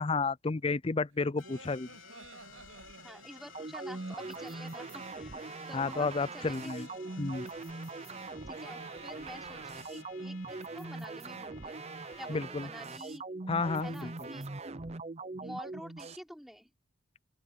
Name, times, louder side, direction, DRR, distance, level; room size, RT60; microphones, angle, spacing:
voice 1, 0.0-2.0 5.7-6.9 7.2-7.5 12.3-12.7 13.5-14.3, left 4 dB, 25° left, 0.5 m, -32 dB
Laughter, 1.1-10.3, right 3 dB, 75° right, 7.4 m, -54 dB
sound 1, 1.4-12.4, left 6 dB, 80° left, 4.0 m, -55 dB
voice 2, 3.0-5.4 5.7-6.8 7.9-8.0 8.5-11.8 12.2-13.2 13.8-14.5 15.4-16.7, equal, ahead, 3.6 m, -48 dB
sound 2, 3.5-16.2, right 3 dB, 30° right, 0.7 m, -42 dB
open air
head